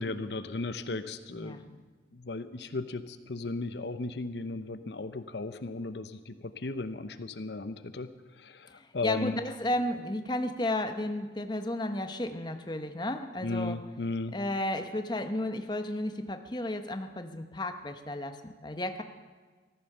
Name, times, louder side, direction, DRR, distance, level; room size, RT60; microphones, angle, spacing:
voice 1, 0.0-1.8 2.1-9.4 13.4-14.4, left 3 dB, 75° left, 11 dB, 0.8 m, -36 dB
voice 2, 1.3-1.6 8.7-13.8 14.3-19.0, left 1 dB, 25° left, 7 dB, 0.9 m, -33 dB
14.5 x 13.5 x 6.7 m, 1.4 s
head